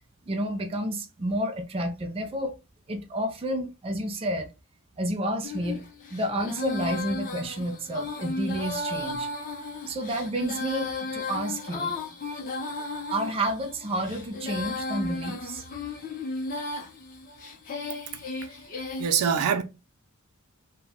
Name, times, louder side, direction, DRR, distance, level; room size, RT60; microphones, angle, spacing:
voice 1, 0.2-2.5 2.9-4.5 5.0-5.8 6.1-9.3 9.9-11.9 13.1-15.6, right 1 dB, 25° right, 0.4 m, -30 dB
Female singing, 5.4-19.1, left 3 dB, 40° left, 0.5 m, -35 dB
voice 2, 19.0-19.6, right 7 dB, 90° right, 0.4 m, -24 dB
2.1 x 2.1 x 3.4 m
head